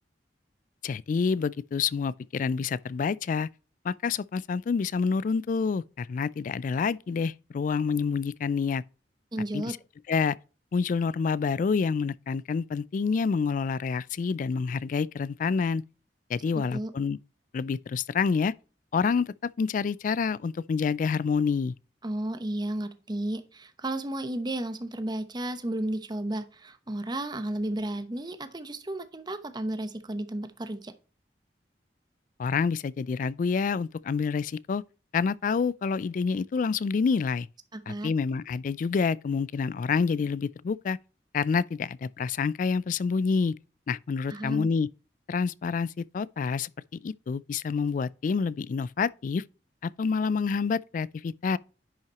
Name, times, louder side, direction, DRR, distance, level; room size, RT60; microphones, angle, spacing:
voice 1, 0.8-3.5 3.8-8.8 9.5-9.8 10.1-10.4 10.7-15.8 16.3-17.2 17.5-18.5 18.9-21.7 32.4-34.8 35.1-37.5 37.9-41.0 41.3-43.5 43.9-44.9 45.3-49.4 49.8-51.6, left 5 dB, 45° left, 0.3 m, -28 dB
voice 2, 9.3-9.7 16.5-16.9 22.0-30.9 37.7-38.1 44.3-44.7, right 1 dB, 25° right, 0.9 m, -33 dB
10.5 x 5.8 x 2.9 m
head